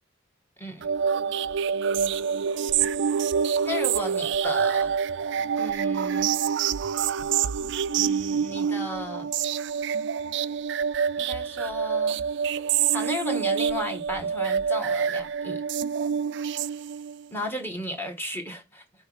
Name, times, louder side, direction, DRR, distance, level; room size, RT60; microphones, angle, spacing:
sound 1, 0.8-17.2, right 7 dB, 65° right, 0.4 m, -26 dB
voice 1, 3.6-4.9 5.6-6.3 7.9-9.3 11.2-12.2 12.9-15.6 17.3-18.8, left 1 dB, 10° left, 1.8 m, -34 dB
6.5 x 4.2 x 6.4 m
head